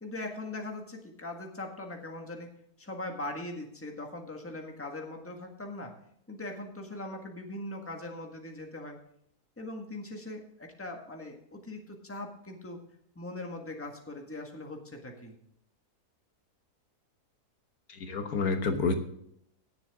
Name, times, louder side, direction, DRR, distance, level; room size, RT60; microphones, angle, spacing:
voice 1, 0.0-2.5 2.8-5.9 6.3-9.0 9.6-12.8 13.1-15.4, left 2 dB, 10° left, 2 dB, 1.6 m, -40 dB
voice 2, 17.9-18.9, left 4 dB, 70° left, 7 dB, 1.5 m, -29 dB
17.5 x 7.2 x 3.6 m, 0.72 s
omnidirectional pair, 1.7 m